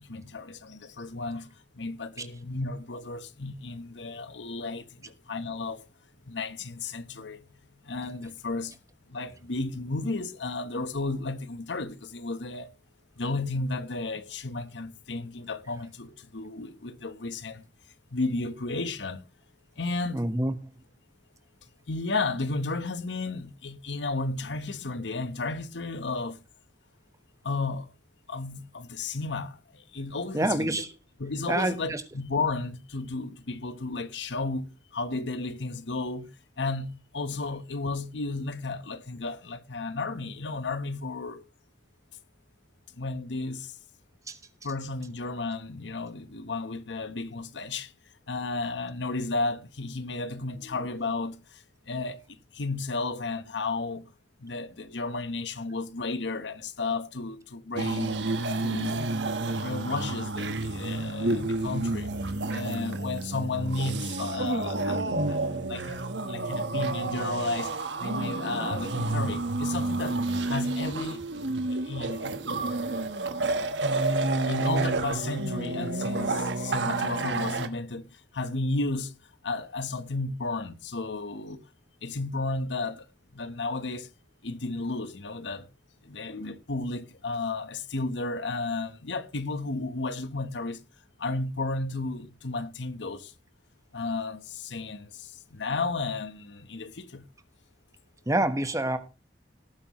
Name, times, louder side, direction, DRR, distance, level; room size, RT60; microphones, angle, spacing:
voice 1, 0.0-1.5 1.8-5.8 6.3-7.4 7.9-8.8 9.1-12.7 13.2-17.6 18.1-19.2 19.8-20.2 21.9-26.4 27.4-27.9 28.3-30.8 31.2-36.3 36.6-41.4 43.0-43.7 44.6-47.9 48.3-52.2 52.5-54.0 54.4-58.3 58.6-59.1 59.6-62.1 62.5-65.0 65.3-65.4 65.7-66.0 66.3-67.7 68.0-70.2 70.5-71.3 71.7-72.4 74.5-78.1 78.3-79.1 79.4-81.6 82.0-83.0 83.3-84.1 84.4-85.7 86.0-90.8 91.2-93.3 93.9-97.2, left 3 dB, 85° left, 1.1 m, -33 dB
voice 2, 20.1-20.5 30.3-30.9 31.5-32.0 44.3-44.4 98.3-99.0, right 1 dB, 20° right, 1.2 m, -27 dB
sound 1, 57.8-77.7, right 2 dB, 80° right, 1.3 m, -30 dB
18.0 x 9.3 x 3.1 m
head